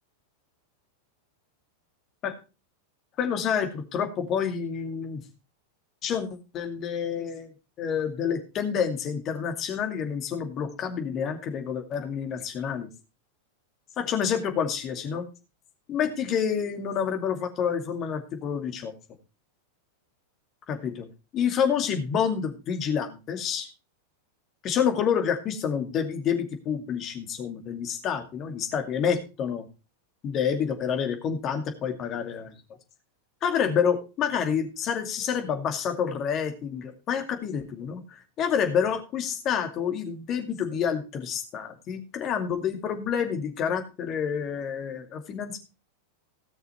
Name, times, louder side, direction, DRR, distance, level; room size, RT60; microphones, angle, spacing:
voice 1, 3.2-5.2 6.0-6.3 6.5-7.5 7.8-12.9 14.0-15.2 15.9-18.9 20.7-21.1 21.3-23.7 24.6-29.6 30.2-32.5 33.4-45.6, left 7 dB, 30° left, 6 dB, 2.3 m, -28 dB
17.0 x 6.7 x 4.4 m, 0.31 s
figure-of-eight pair, 90°, 0 cm